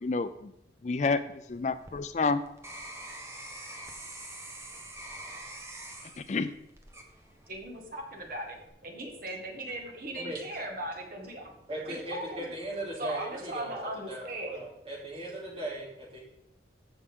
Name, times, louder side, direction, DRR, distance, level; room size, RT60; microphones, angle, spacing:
voice 1, 0.0-0.5 0.8-1.2 1.5-2.4 6.2-6.5, left 4 dB, 40° left, 12 dB, 0.4 m, -29 dB
sound 1, 1.5-7.7 8.2-8.7, right 1 dB, 15° right, 1.2 m, -45 dB
voice 2, 7.5-8.6 8.8-11.4 11.9-12.5 13.0-14.7, right 1 dB, 50° right, 1 dB, 1.9 m, -38 dB
voice 3, 11.6-13.7 14.1-16.2, right 1 dB, 30° right, -4 dB, 3.2 m, -38 dB
15.5 x 6.1 x 3.7 m, 0.83 s
head